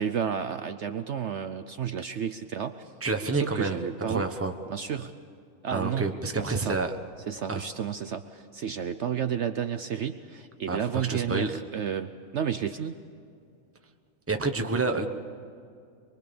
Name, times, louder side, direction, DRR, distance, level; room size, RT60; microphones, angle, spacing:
voice 1, 0.0-2.9 3.3-4.3 4.7-5.1 5.6-6.8 7.3-13.0, right 8 dB, 60° right, 9 dB, 0.9 m, -31 dB
voice 2, 3.0-4.5 5.7-6.9 7.5-7.6 10.7-11.5 14.3-15.1, right 3 dB, 10° right, 5 dB, 1.0 m, -29 dB
23.5 x 23.5 x 6.9 m, 2.4 s
omnidirectional pair, 1.5 m